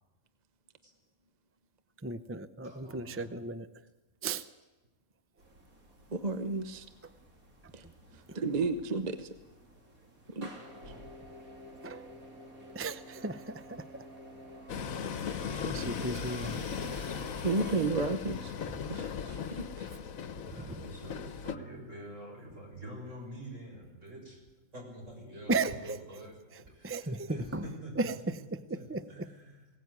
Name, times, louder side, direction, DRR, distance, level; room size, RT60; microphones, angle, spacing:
voice 1, 2.0-3.7 4.2-4.5 8.3-8.4 11.8-12.1 12.7-13.8 15.0-16.6 20.5-20.8 25.5-26.0 26.5-27.6 28.0-29.3, right 3 dB, 15° right, 13 dB, 0.4 m, -35 dB
voice 2, 2.6-3.4 20.5-24.4 24.7-26.3 26.7-28.1 28.8-29.6, right 1 dB, 55° right, 0 dB, 6.8 m, -46 dB
sound 1, 5.4-17.9, equal, 75° right, 3.8 m, -50 dB
voice 3, 6.1-6.9 7.7-7.8 8.3-9.3 10.3-10.5 17.4-18.5 18.9-19.9, right 3 dB, 35° right, 10 dB, 1.0 m, -32 dB
Train, 14.7-21.5, left 7 dB, 70° left, 1.4 m, -37 dB
21.0 x 17.5 x 9.6 m, 1.2 s
omnidirectional pair, 1.5 m